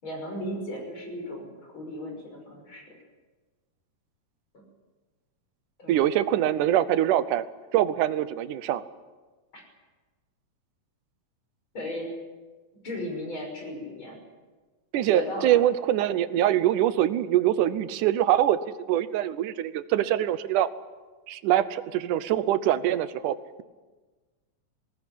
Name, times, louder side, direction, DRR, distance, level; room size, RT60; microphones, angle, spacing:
voice 1, 0.0-2.9 4.5-4.6 5.8-6.1 9.5-9.6 11.7-12.1 12.8-14.2 15.1-15.6, left 1 dB, 40° left, 2 dB, 6.6 m, -36 dB
voice 2, 5.9-7.5 7.7-8.8 14.9-18.6 18.9-20.7 21.3-23.4, right 12 dB, 85° right, 14 dB, 2.4 m, -24 dB
20.5 x 18.5 x 10.0 m, 1.3 s
omnidirectional pair, 3.5 m